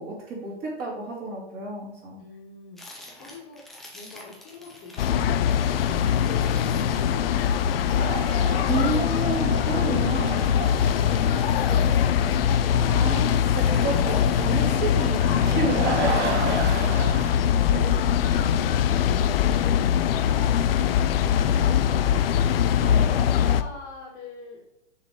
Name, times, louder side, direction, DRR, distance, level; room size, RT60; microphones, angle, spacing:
voice 1, 0.0-2.2 8.7-10.5 12.9-16.6 17.7-18.1 22.8-23.3, right 3 dB, 30° right, -3 dB, 2.8 m, -31 dB
voice 2, 2.2-9.3 10.9-12.3 16.9-17.9 18.2-22.3 22.8-24.6, left 4 dB, 30° left, 0 dB, 1.6 m, -45 dB
sound 1, 2.8-5.2 5.5-12.7 13.1-15.5 15.8-17.3, left 1 dB, ahead, 0.4 m, -48 dB
sound 2, 5.0-23.6, left 9 dB, 60° left, 0.5 m, -22 dB
sound 3, 7.9-17.3, right 4 dB, 85° right, 1.4 m, -34 dB
6.4 x 5.6 x 3.7 m, 0.85 s
hypercardioid pair, 140°, 34 cm